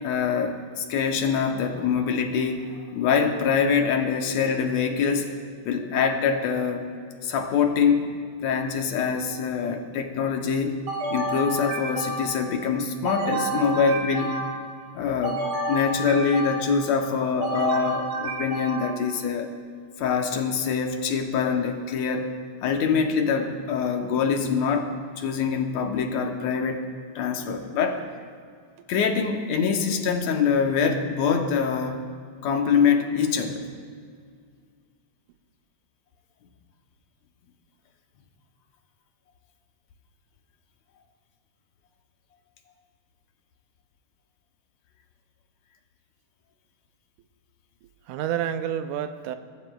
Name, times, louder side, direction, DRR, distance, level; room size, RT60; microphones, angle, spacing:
voice 1, 0.0-5.4 5.7-6.9 7.2-8.1 8.4-10.8 11.1-14.4 14.9-19.5 20.0-22.3 22.6-26.8 27.2-28.0 28.9-32.0 32.4-33.6, left 6 dB, 75° left, 4 dB, 2.0 m, -24 dB
sound 1, 10.9-12.5 13.0-14.7 15.2-16.9 17.4-19.1, right 2 dB, 55° right, 3.4 m, -30 dB
voice 2, 47.8-49.4, right 10 dB, 90° right, 9 dB, 2.1 m, -30 dB
22.5 x 13.0 x 2.3 m, 2.1 s
omnidirectional pair, 3.5 m